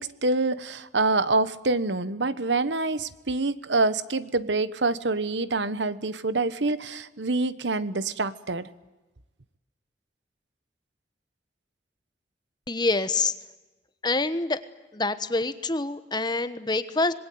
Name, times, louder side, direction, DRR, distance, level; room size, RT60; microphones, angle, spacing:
voice 1, 0.0-8.7, right 3 dB, 80° right, 15 dB, 1.2 m, -26 dB
voice 2, 12.7-13.3 14.0-14.6 14.9-17.1, left 3 dB, 25° left, 12 dB, 1.2 m, -26 dB
26.5 x 21.0 x 9.4 m, 1.1 s
head